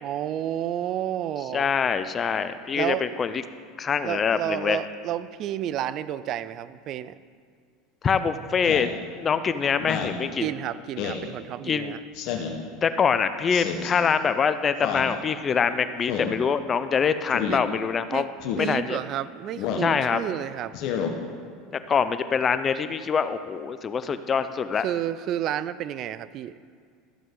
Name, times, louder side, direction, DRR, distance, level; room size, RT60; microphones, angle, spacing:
voice 1, 0.0-1.7 2.8-3.1 4.0-7.2 10.4-12.0 17.5-17.6 18.1-18.3 18.6-20.8 24.8-26.5, right 11 dB, 50° right, 16 dB, 0.4 m, -30 dB
voice 2, 1.5-3.4 3.8-4.8 8.0-8.9 9.2-10.5 11.7-11.9 12.8-18.3 18.6-19.0 19.8-20.2 21.9-24.9, left 6 dB, 30° left, 11 dB, 0.6 m, -24 dB
Speech synthesizer, 8.6-8.9 9.8-10.2 11.0-11.3 12.1-12.6 13.5-13.9 14.8-15.1 16.1-16.4 17.3-17.6 18.4-18.7 19.6-19.9 20.7-21.1, left 7 dB, 60° left, 1.2 m, -30 dB
14.0 x 7.5 x 3.8 m, 2.1 s
supercardioid pair, 105°, 0 cm